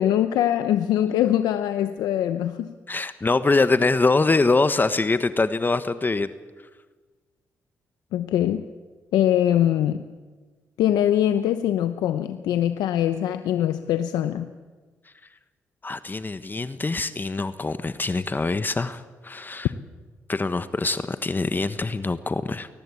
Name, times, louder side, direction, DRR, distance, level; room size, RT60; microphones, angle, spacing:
voice 1, 0.0-2.7 8.1-8.6 9.1-10.0 10.8-14.5, left 11 dB, 85° left, 10 dB, 0.8 m, -22 dB
voice 2, 2.9-6.3 15.8-19.7 20.3-22.7, left 3 dB, 30° left, 12 dB, 1.2 m, -24 dB
22.0 x 18.5 x 8.5 m, 1.4 s
supercardioid pair, 60°, 7 cm